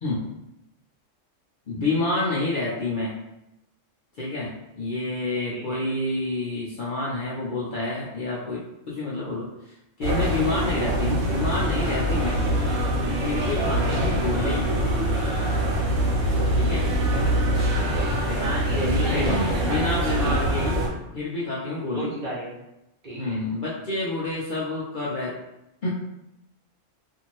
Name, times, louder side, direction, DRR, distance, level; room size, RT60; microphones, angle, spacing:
voice 1, 1.7-3.2 4.2-12.4 13.2-14.7 16.5-16.9 18.7-20.8 21.1-22.1 23.2-25.4 25.8-25.9, left 2 dB, 55° left, -6 dB, 0.6 m, -28 dB
sound 1, 10.0-20.9, right 1 dB, 75° right, 1.1 m, -24 dB
voice 2, 17.7-20.4 21.9-22.5 23.0-23.4, right 1 dB, 45° right, -7 dB, 1.0 m, -34 dB
2.7 x 2.5 x 2.9 m, 0.87 s
omnidirectional pair, 1.3 m